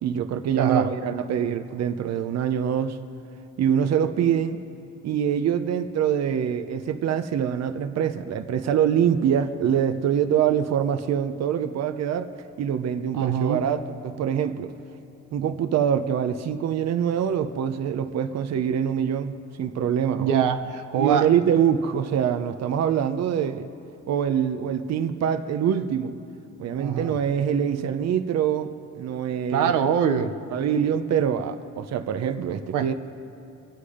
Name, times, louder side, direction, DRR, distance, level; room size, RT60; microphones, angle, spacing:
voice 1, 0.0-3.0 3.6-4.6 5.0-12.3 12.6-14.7 15.3-20.4 21.0-23.7 24.1-26.2 26.6-29.9 30.5-32.9, right 8 dB, 60° right, 8 dB, 0.7 m, -24 dB
voice 2, 0.6-0.9 13.1-13.6 20.2-21.3 26.8-27.2 29.5-30.4 32.7-32.9, right 8 dB, 90° right, 7 dB, 0.8 m, -24 dB
23.5 x 8.5 x 5.0 m, 2.9 s
cardioid pair, 90°, 30 cm